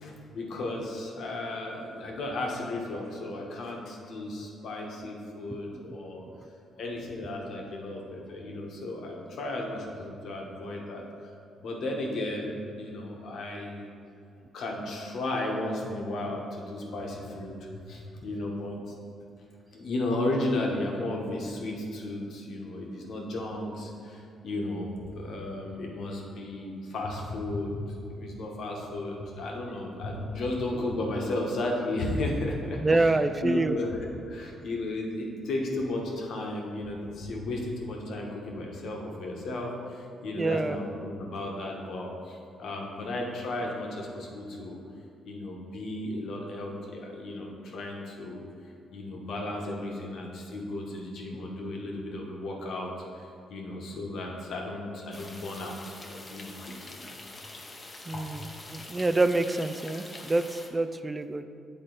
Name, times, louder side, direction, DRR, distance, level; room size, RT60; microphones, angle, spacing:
voice 1, 0.0-6.2 6.8-11.0 11.6-13.8 14.5-17.5 17.9-18.8 19.7-27.7 28.0-44.8 45.2-48.4 48.9-52.9 53.2-57.0 58.1-58.2, left 2 dB, 70° left, -1 dB, 1.2 m, -34 dB
voice 2, 32.8-33.8 40.3-40.8 58.1-61.4, right 2 dB, 20° right, 10 dB, 0.3 m, -27 dB
sound 1, 55.1-60.7, left 2 dB, 30° left, 0.8 m, -45 dB
8.8 x 3.8 x 3.9 m, 2.6 s
cardioid pair, 90°, 0 cm